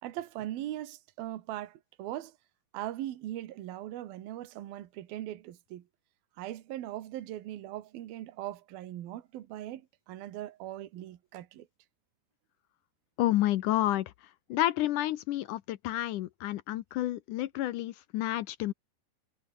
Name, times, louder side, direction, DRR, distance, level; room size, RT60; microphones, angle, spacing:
voice 1, 0.0-2.3 2.7-5.8 6.4-9.8 10.1-11.7, right 13 dB, 75° right, 3.3 m, -40 dB
voice 2, 13.2-14.1 14.5-18.7, left 14 dB, 75° left, 2.0 m, -30 dB
omnidirectional pair, 4.4 m